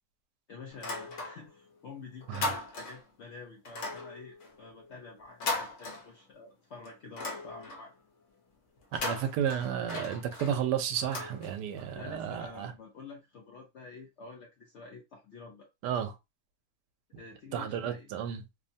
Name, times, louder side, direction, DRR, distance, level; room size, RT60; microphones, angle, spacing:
voice 1, 0.5-7.9 11.9-15.7 17.2-18.1, left 4 dB, 70° left, 0.6 m, -48 dB
sound 1, 0.7-1.7 2.0-3.1 3.6-6.5 6.8-8.0 8.8-11.9, left 2 dB, 55° left, 1.0 m, -38 dB
voice 2, 9.0-12.7 15.8-16.1 17.5-18.4, right 9 dB, 85° right, 1.2 m, -32 dB
3.2 x 2.1 x 2.6 m
omnidirectional pair, 1.8 m